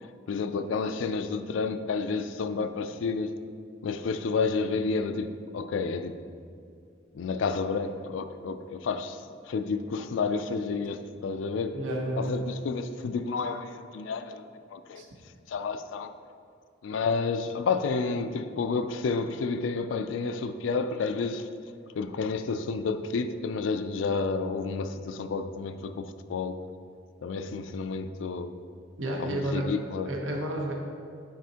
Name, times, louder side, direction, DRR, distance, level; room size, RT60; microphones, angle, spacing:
voice 1, 0.3-3.3 3.8-6.2 7.1-9.2 9.5-11.8 12.2-14.4 14.7-15.0 15.5-16.1 16.8-21.5 22.0-26.6 27.2-28.5 29.2-30.1, left 4 dB, 80° left, 10 dB, 0.4 m, -30 dB
voice 2, 11.7-12.4 14.9-15.1 29.0-29.7 30.0-30.7, right 1 dB, 85° right, 0 dB, 1.0 m, -31 dB
9.5 x 4.2 x 2.8 m, 2.3 s
head